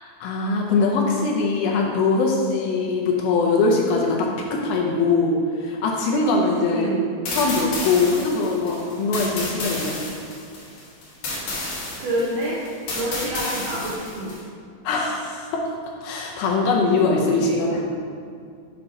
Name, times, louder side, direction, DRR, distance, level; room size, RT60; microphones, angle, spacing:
voice 1, 0.2-7.0 7.3-10.0 14.8-15.7 16.0-17.9, left 3 dB, 80° left, -1 dB, 2.3 m, -22 dB
voice 2, 6.7-7.1 12.0-14.3 17.3-17.8, right 1 dB, 80° right, -6 dB, 1.9 m, -28 dB
sound 1, 7.2-14.4, left 2 dB, 65° left, 1.7 m, -31 dB
8.5 x 2.8 x 5.3 m, 2.3 s
omnidirectional pair, 4.6 m